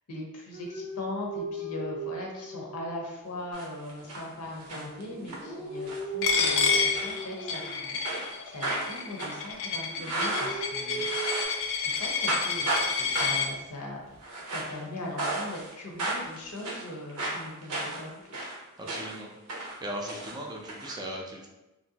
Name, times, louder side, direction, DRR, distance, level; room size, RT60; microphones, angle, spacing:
voice 1, 0.1-11.1 11.7-14.0 14.5-18.4, left 1 dB, 90° left, 0 dB, 0.7 m, -40 dB
sound 1, 0.5-3.4 4.0-8.2 8.6-9.6 9.9-11.4, right 3 dB, 25° left, 0.6 m, -38 dB
sound 2, 3.5-4.3 4.5-5.4 5.8-6.1 6.4-6.6 6.9-7.8 8.0-11.6 11.9-12.9 13.1-13.5 14.1-14.8 15.2-15.7 16.0-19.2 19.5-20.9, right 2 dB, 90° right, 0.7 m, -34 dB
Coin (dropping), 6.2-13.5, left 6 dB, 65° left, 0.4 m, -29 dB
voice 2, 18.8-19.3 19.8-21.5, right 1 dB, 20° right, -1 dB, 0.5 m, -37 dB
3.0 x 2.6 x 2.7 m, 0.98 s
head